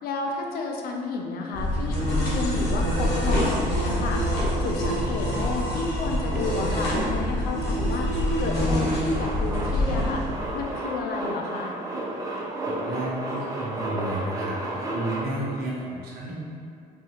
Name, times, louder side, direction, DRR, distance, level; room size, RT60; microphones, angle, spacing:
voice 1, 0.0-10.2 10.5-11.7, left 3 dB, 65° left, 1 dB, 0.5 m, -31 dB
sound 1, 1.5-10.7, equal, 80° left, 1.2 m, -25 dB
Male speech man speaking, 8.6-15.2, right 1 dB, 20° right, 0.5 m, -32 dB
voice 2, 12.6-16.3, right 1 dB, 70° right, -5 dB, 0.9 m, -32 dB
4.5 x 2.5 x 2.9 m, 2.3 s
cardioid pair, 110°, 17 cm